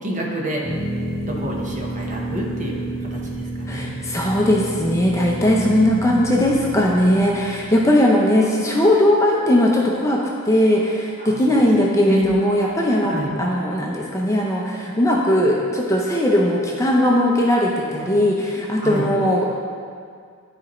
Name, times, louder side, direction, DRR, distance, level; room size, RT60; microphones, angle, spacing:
voice 1, 0.0-0.6 1.2-3.9 5.5-6.8 11.2-11.7 12.0-12.4 13.0-13.4 18.8-19.1, equal, 35° right, -2 dB, 1.0 m, -28 dB
sound 1, 0.6-7.8, right 1 dB, 10° right, 1.1 m, -30 dB
voice 2, 3.7-19.5, left 1 dB, 15° left, -2 dB, 0.6 m, -19 dB
11.0 x 4.2 x 3.0 m, 2.1 s
head